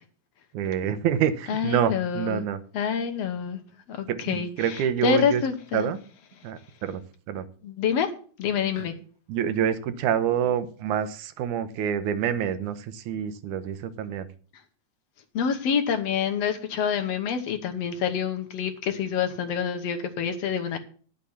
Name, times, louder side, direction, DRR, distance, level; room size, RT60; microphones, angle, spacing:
voice 1, 0.5-2.6 4.1-5.4 5.7-6.0 6.4-7.0 7.3-7.5 8.8-8.9 9.3-14.3, right 9 dB, 85° right, 11 dB, 2.3 m, -27 dB
voice 2, 1.5-2.4 2.7-3.6 3.9-5.9 7.6-8.1 8.4-8.9 15.3-20.8, left 7 dB, 65° left, 6 dB, 2.0 m, -27 dB
11.0 x 6.6 x 7.0 m, 0.43 s
omnidirectional pair, 3.4 m